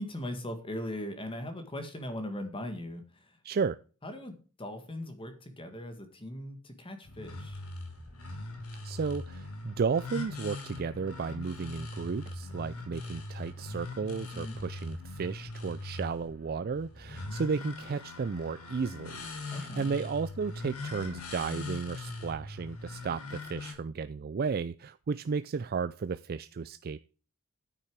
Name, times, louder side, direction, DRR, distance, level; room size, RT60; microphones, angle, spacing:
voice 1, 0.0-3.4 4.0-7.6 14.3-14.6 19.5-19.9, left 1 dB, 25° left, 7 dB, 1.8 m, -39 dB
voice 2, 3.4-3.8 8.8-27.0, right 5 dB, 45° right, 13 dB, 0.4 m, -33 dB
sound 1, 7.0-23.7, left 3 dB, 70° left, 3.1 m, -41 dB
9.9 x 8.7 x 4.7 m, 0.37 s
head